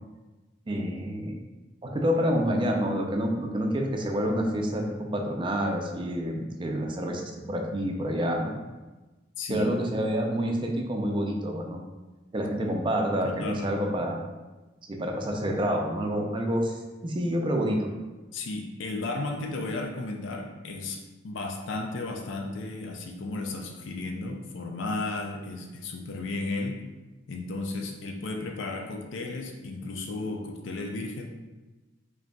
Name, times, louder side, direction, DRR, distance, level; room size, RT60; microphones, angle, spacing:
voice 1, 0.7-1.4 1.8-8.6 9.5-11.8 12.3-14.3 14.9-17.9, equal, 25° right, 2 dB, 0.4 m, -28 dB
voice 2, 9.4-9.7 12.6-12.8 13.1-13.9 18.3-26.8 27.3-31.3, left 2 dB, 75° left, 2 dB, 0.5 m, -34 dB
5.0 x 2.7 x 2.2 m, 1.2 s
head